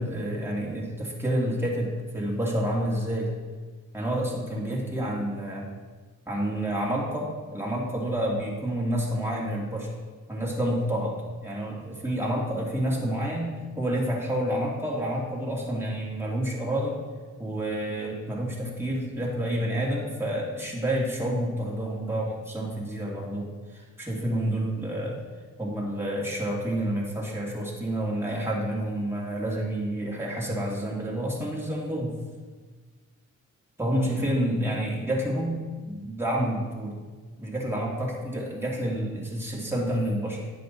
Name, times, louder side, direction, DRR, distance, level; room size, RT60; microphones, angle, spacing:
voice 1, 0.0-3.3 3.9-5.7 6.3-9.9 10.3-11.2 11.4-17.0 17.4-25.2 25.6-32.2 33.8-35.6 35.9-36.9 37.4-40.4, right 1 dB, 5° right, -4 dB, 2.6 m, -29 dB
10.0 x 6.8 x 4.2 m, 1.4 s
cardioid pair, 60°, 33 cm